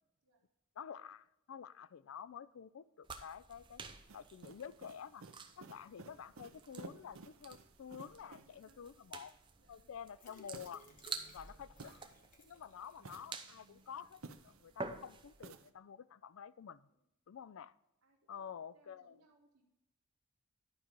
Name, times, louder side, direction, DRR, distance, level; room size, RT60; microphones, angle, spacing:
voice 1, 0.8-3.8 4.1-5.3 5.6-9.3 9.7-10.9 11.3-12.1 12.4-16.9 17.3-17.7 18.3-19.2, left 7 dB, 70° left, 0.4 m, -50 dB
sound 1, 3.0-15.5, right 4 dB, 20° right, 0.6 m, -51 dB
sound 2, 4.1-8.7 10.5-12.5 12.9-14.8 15.4-15.7, right 4 dB, 70° right, 0.6 m, -56 dB
voice 2, 8.0-8.9 9.6-9.9 11.0-11.2 16.9-17.0 18.0-19.6, right 2 dB, 85° right, 1.5 m, -70 dB
sound 3, 10.1-13.3 13.6-13.7 14.0-14.1, left 2 dB, 35° left, 1.1 m, -62 dB
11.5 x 5.2 x 4.5 m
head